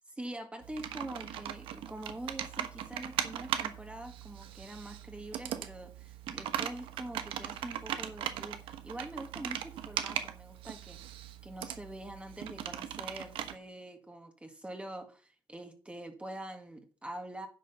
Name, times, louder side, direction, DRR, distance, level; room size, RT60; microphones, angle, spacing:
voice 1, 0.1-17.5, right 1 dB, 15° right, 5 dB, 1.8 m, -45 dB
Computer keyboard, 0.6-13.5, right 10 dB, 90° right, 1.2 m, -39 dB
10.5 x 4.9 x 6.9 m, 0.39 s
cardioid pair, 95°, 9 cm